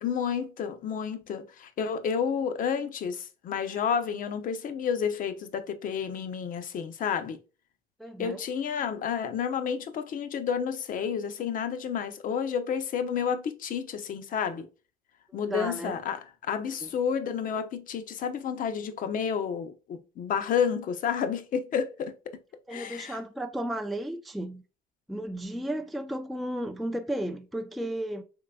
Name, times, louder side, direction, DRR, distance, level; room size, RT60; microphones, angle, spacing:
voice 1, 0.0-7.4 8.2-14.7 15.3-22.1 22.7-23.2, left 7 dB, 55° left, 0.7 m, -30 dB
voice 2, 8.0-8.4 15.3-16.0 16.8-16.9 22.7-24.6 25.1-28.2, right 1 dB, ahead, 0.4 m, -34 dB
3.7 x 3.2 x 2.3 m
cardioid pair, 110°, 17 cm